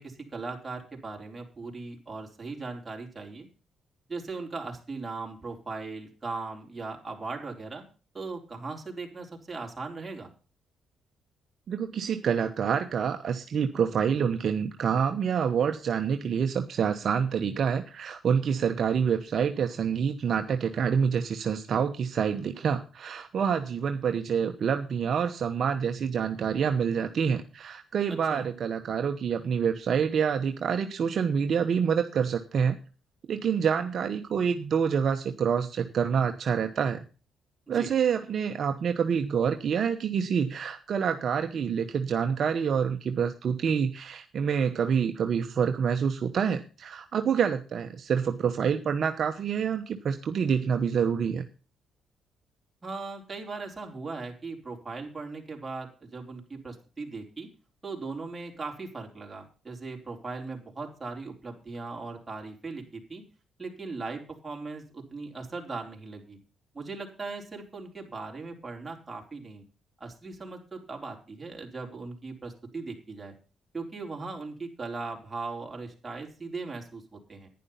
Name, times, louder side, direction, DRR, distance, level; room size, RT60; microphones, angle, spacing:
voice 1, 0.0-3.5 4.1-7.8 8.1-10.3 28.1-28.5 37.7-37.9 52.8-57.5 57.8-63.2 63.6-66.4 66.7-69.6 70.0-73.3 73.7-77.5, right 3 dB, 20° right, 1 dB, 4.1 m, -38 dB
voice 2, 11.7-32.7 33.3-37.0 37.7-51.4, right 7 dB, 55° right, 6 dB, 1.0 m, -27 dB
11.0 x 10.5 x 5.6 m, 0.36 s
cardioid pair, 90°, 0 cm